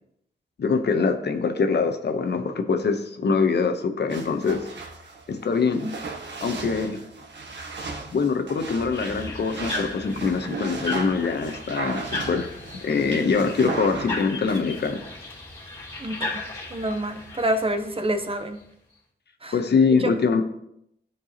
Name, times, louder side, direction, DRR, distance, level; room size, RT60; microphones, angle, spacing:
voice 1, 0.6-4.7 5.3-5.9 6.4-7.0 8.1-12.5 12.8-15.0 19.5-20.4, left 5 dB, 65° left, 6 dB, 0.9 m, -23 dB
sound 1, 4.1-14.2, right 4 dB, 75° right, 1.4 m, -36 dB
sound 2, 8.9-18.6, left 3 dB, 20° left, 2.8 m, -36 dB
voice 2, 16.0-16.4 16.7-18.6 19.4-19.6 20.0-20.1, right 1 dB, 30° right, 7 dB, 0.9 m, -27 dB
13.5 x 4.6 x 2.9 m, 0.76 s
wide cardioid pair, 85°, 19 cm